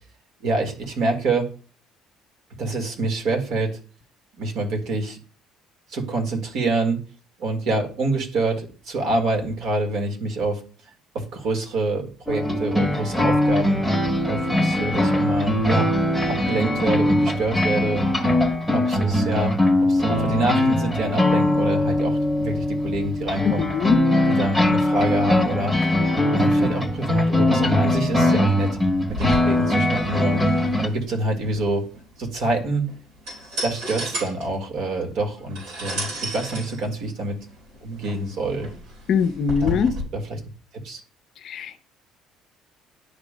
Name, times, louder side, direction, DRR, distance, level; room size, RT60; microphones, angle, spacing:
voice 1, 0.4-1.5 2.6-3.8 4.4-5.2 5.9-7.0 7.4-10.6 11.2-13.8 14.3-15.9 16.3-18.0 18.7-19.6 19.9-23.7 24.4-25.7 26.3-28.8 29.1-30.4 30.8-31.8 32.2-32.8 33.6-37.4 37.8-38.7 39.7-39.9 40.8-41.0, right 2 dB, 65° right, 1.7 m, -26 dB
sound 1, 12.3-30.9, left 1 dB, 5° right, 1.2 m, -21 dB
voice 2, 23.4-24.0 39.1-40.0 41.4-41.8, left 6 dB, 55° left, 0.5 m, -22 dB
sound 2, 29.1-40.0, equal, 85° right, 3.6 m, -34 dB
10.5 x 5.0 x 2.2 m
cardioid pair, 115°, 0 cm